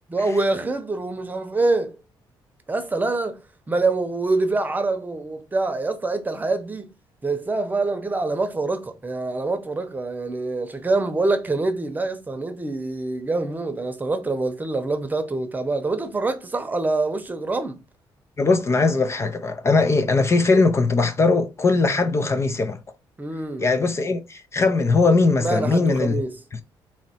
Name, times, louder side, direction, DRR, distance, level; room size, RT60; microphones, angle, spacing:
voice 1, 0.1-2.0 2.7-3.4 3.7-6.9 7.2-17.8 23.2-23.6 25.4-26.3, right 3 dB, 20° right, 0.9 m, -25 dB
voice 2, 18.4-22.8 23.6-26.2 26.5-26.6, left 3 dB, 30° left, 0.5 m, -20 dB
4.1 x 2.9 x 4.3 m
cardioid pair, 115°, 9 cm